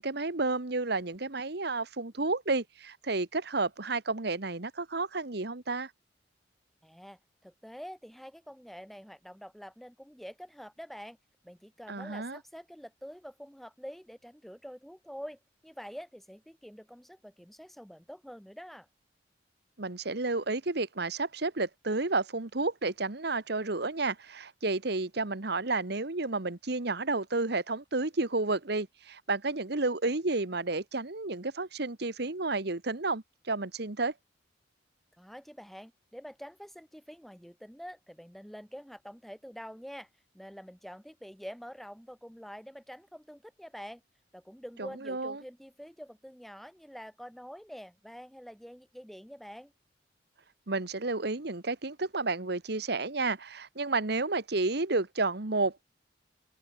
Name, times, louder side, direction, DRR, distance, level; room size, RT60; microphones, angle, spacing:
voice 1, 0.0-5.9 11.9-12.4 19.8-34.1 45.1-45.3 50.7-55.8, right 3 dB, 60° right, 1.4 m, -31 dB
voice 2, 6.8-11.2 11.4-18.9 35.2-40.1 40.3-44.0 44.3-49.7, equal, ahead, 2.6 m, -46 dB
open air
head